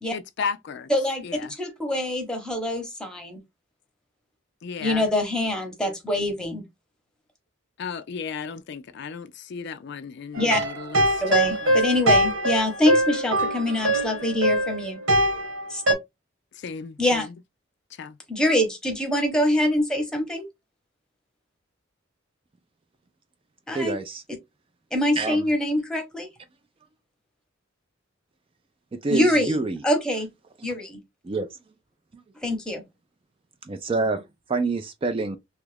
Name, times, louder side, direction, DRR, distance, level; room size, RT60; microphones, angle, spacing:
voice 1, 0.1-0.9 1.2-1.5 4.6-5.1 7.8-11.8 16.5-17.3 17.9-18.2, left 5 dB, 60° left, 0.4 m, -35 dB
voice 2, 0.9-1.2 1.6-3.4 4.8-6.6 10.4-10.6 11.2-15.0 15.7-15.8 17.0-17.3 18.3-20.4 23.7-24.0 24.9-26.3 29.1-30.3 30.6-31.0 32.4-32.8, left 1 dB, 5° left, 0.9 m, -24 dB
sound 1, 10.3-15.9, right 1 dB, 80° right, 1.3 m, -22 dB
voice 3, 23.7-24.2 25.1-25.5 28.9-29.8 31.2-31.5 32.1-32.2 33.6-34.2 34.5-35.4, right 3 dB, 25° right, 0.4 m, -27 dB
3.1 x 2.4 x 3.2 m
head